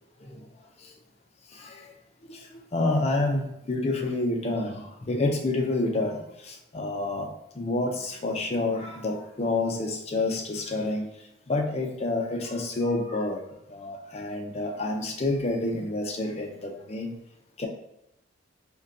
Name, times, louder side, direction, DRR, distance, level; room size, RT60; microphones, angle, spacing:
voice 1, 2.7-6.2 6.4-7.3 7.6-11.1 11.5-13.4 13.7-17.1 17.6-17.7, left 2 dB, 30° left, 2 dB, 0.4 m, -28 dB
5.1 x 2.2 x 2.6 m, 0.83 s
head